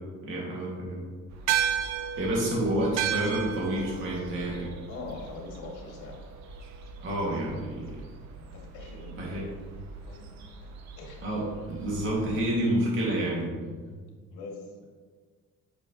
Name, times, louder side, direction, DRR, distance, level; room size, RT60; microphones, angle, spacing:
voice 1, 0.3-1.1 2.2-4.7 7.0-7.9 9.2-9.5 11.2-13.9, right 1 dB, 40° right, -5 dB, 2.4 m, -29 dB
sound 1, 1.3-12.5, right 3 dB, 65° right, 1.0 m, -46 dB
sound 2, 1.5-6.2, right 10 dB, 80° right, 0.7 m, -32 dB
voice 2, 4.9-6.2 8.4-9.4 10.0-10.7 11.0-11.4 12.2-12.3 14.3-14.9, left 3 dB, 80° left, -1 dB, 2.3 m, -43 dB
9.6 x 7.0 x 3.2 m, 1.5 s
cardioid pair, 160°, 29 cm